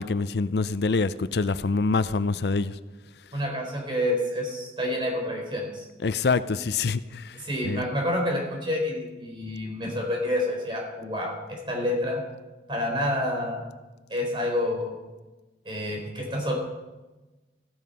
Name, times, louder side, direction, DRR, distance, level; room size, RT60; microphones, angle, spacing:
voice 1, 0.0-2.8 6.0-7.8, left 4 dB, 70° left, 14 dB, 0.5 m, -26 dB
voice 2, 3.3-5.8 7.3-12.2 12.7-13.6 14.1-14.9 15.6-16.5, left 1 dB, 30° right, 0 dB, 4.2 m, -28 dB
14.5 x 12.5 x 5.5 m, 1.1 s
head